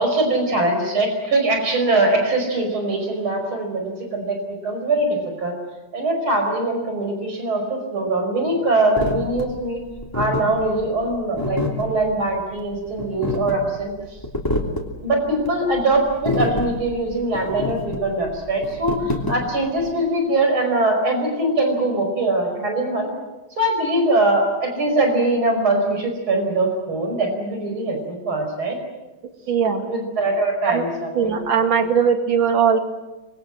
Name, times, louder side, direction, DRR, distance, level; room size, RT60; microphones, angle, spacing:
voice 1, 0.0-4.4 4.6-5.6 5.9-9.8 10.1-13.9 15.0-23.1 23.6-28.8 29.8-31.4, right 2 dB, 90° right, 3 dB, 5.9 m, -22 dB
sound 1, 9.0-19.9, left 2 dB, 10° left, 3.1 m, -28 dB
voice 2, 29.5-29.9 30.6-30.8 31.1-32.8, right 7 dB, 70° right, 5 dB, 3.0 m, -19 dB
26.0 x 22.5 x 7.8 m, 1.1 s
omnidirectional pair, 2.2 m